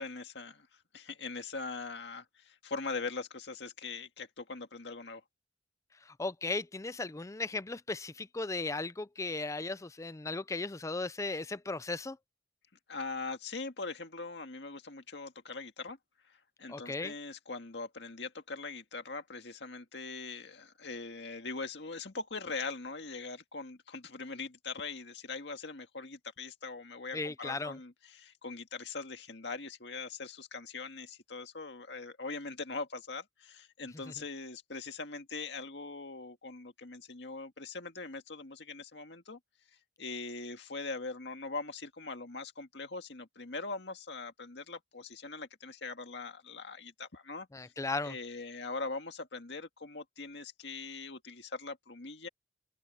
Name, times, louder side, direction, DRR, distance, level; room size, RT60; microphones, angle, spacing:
voice 1, 0.0-5.2 12.9-16.0 16.2-39.4 40.0-47.7 48.0-52.3, left 3 dB, 70° left, 2.0 m, -41 dB
voice 2, 6.1-12.2 16.7-17.1 27.1-27.8 47.5-48.1, left 3 dB, 15° left, 0.5 m, -36 dB
open air
head